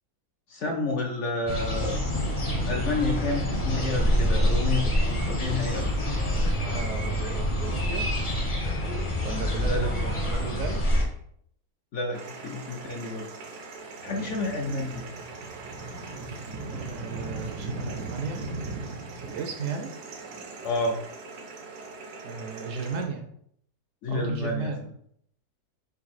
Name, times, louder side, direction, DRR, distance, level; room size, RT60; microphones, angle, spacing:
voice 1, 0.5-2.0 2.7-6.0 9.6-9.9 11.9-13.3 13.8-15.1 20.6-21.0 24.0-24.7, left 2 dB, 65° left, 2 dB, 0.7 m, -30 dB
sound 1, 1.5-11.0, equal, 30° left, 0.6 m, -26 dB
voice 2, 6.3-8.1 9.2-10.8 14.1-14.3 16.7-18.4 19.1-19.9 22.2-23.3 24.1-24.9, right 4 dB, 70° right, 4 dB, 0.9 m, -35 dB
sound 2, 12.1-23.1, right 3 dB, 90° right, 1.3 m, -39 dB
3.9 x 2.6 x 4.1 m, 0.68 s
omnidirectional pair, 1.6 m